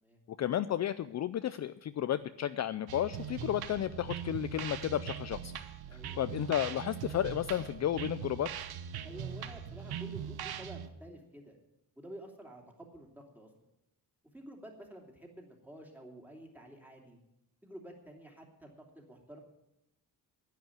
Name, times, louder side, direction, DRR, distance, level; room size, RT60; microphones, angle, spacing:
voice 1, 0.3-5.6 6.2-8.5, left 11 dB, 50° left, 13 dB, 0.4 m, -33 dB
sound 1, 2.9-10.9, right 9 dB, 80° right, 1.0 m, -41 dB
voice 2, 5.9-6.2 9.0-11.6 12.0-13.5 14.3-17.2 17.6-19.4, right 1 dB, 5° right, 0 dB, 2.8 m, -50 dB
10.5 x 9.1 x 9.1 m, 0.86 s
cardioid pair, 120°, 37 cm